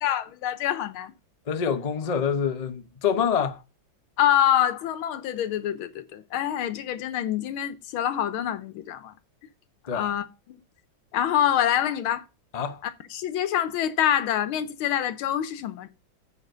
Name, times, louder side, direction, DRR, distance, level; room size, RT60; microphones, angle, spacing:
voice 1, 0.0-1.1 4.2-9.1 9.9-10.6 11.1-12.3 12.8-15.9, left 10 dB, 90° left, 1.7 m, -26 dB
voice 2, 1.5-3.6 9.9-10.1 12.5-12.8, left 7 dB, 40° left, 0.5 m, -26 dB
8.5 x 5.0 x 6.7 m
omnidirectional pair, 2.2 m